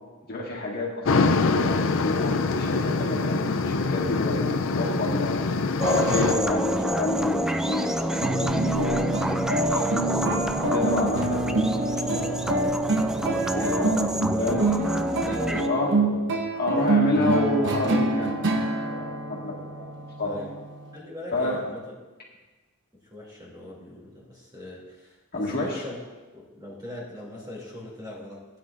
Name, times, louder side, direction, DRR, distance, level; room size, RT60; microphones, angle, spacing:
voice 1, 0.3-5.4 5.8-9.1 9.7-14.1 14.3-14.6 15.7-16.0 16.6-19.9 20.2-20.5 21.3-21.6 25.3-25.8, left 2 dB, 45° left, -4 dB, 1.9 m, -29 dB
sound 1, 1.1-6.3, left 3 dB, 60° left, 0.5 m, -24 dB
sound 2, 5.8-15.7, right 1 dB, 5° right, 0.3 m, -28 dB
sound 3, 8.2-21.0, right 2 dB, 55° right, 1.0 m, -26 dB
voice 2, 14.0-15.0 15.2-16.3 16.6-17.0 20.2-20.6 20.9-21.8 22.9-26.0 26.3-28.5, left 1 dB, 20° right, -4 dB, 2.9 m, -40 dB
15.5 x 9.5 x 2.6 m, 1.2 s
head